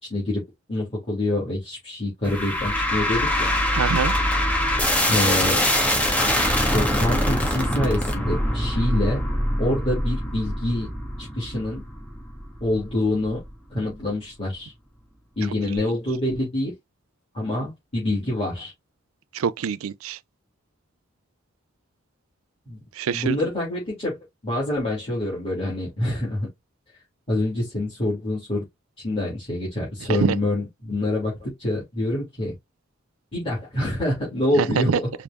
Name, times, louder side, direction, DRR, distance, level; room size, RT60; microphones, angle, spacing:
voice 1, 0.1-0.4 0.7-3.5 5.1-5.6 6.6-9.2 9.6-10.9 11.2-11.8 12.6-13.4 13.7-14.7 15.4-16.7 17.3-18.7 22.7-22.8 23.1-24.2 24.4-26.5 27.3-28.6 29.0-32.5 33.3-35.1, left 1 dB, 30° left, 2.5 m, -26 dB
sound 1, 2.2-13.5, equal, 5° left, 1.4 m, -24 dB
voice 2, 3.8-4.1 19.3-20.2 23.0-23.4 30.2-30.4 34.6-35.0, right 7 dB, 90° right, 0.4 m, -24 dB
5.0 x 2.6 x 3.4 m
head